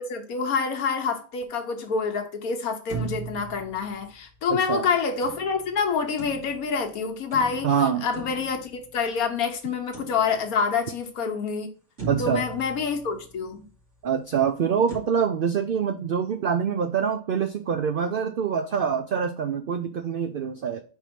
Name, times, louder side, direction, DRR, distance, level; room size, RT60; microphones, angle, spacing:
voice 1, 0.0-11.7 12.2-13.6, left 5 dB, 80° left, 1.4 m, -27 dB
sound 1, 2.9-4.5 5.2-6.8 7.3-9.2 9.9-10.8 11.3-11.4 12.0-13.7 14.9-15.0, right 5 dB, 50° right, 2.8 m, -38 dB
voice 2, 4.5-4.9 7.6-8.1 12.1-12.4 14.0-20.8, right 7 dB, 90° right, 0.4 m, -25 dB
4.7 x 4.4 x 5.1 m
omnidirectional pair, 1.5 m